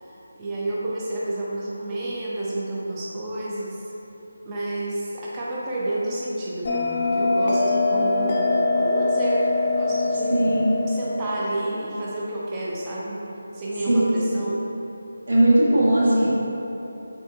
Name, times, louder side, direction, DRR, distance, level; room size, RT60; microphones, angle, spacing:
voice 1, 0.0-3.9 4.4-10.4 10.9-13.3 13.5-14.6, right 1 dB, 15° right, -7 dB, 0.6 m, -30 dB
Bell, 6.7-11.7, left 3 dB, 30° left, 0.5 m, -23 dB
voice 2, 10.3-10.8 13.9-14.5 15.3-16.4, right 1 dB, 70° right, -7 dB, 1.4 m, -19 dB
5.2 x 3.7 x 2.4 m, 3.0 s
figure-of-eight pair, 165°, 0 cm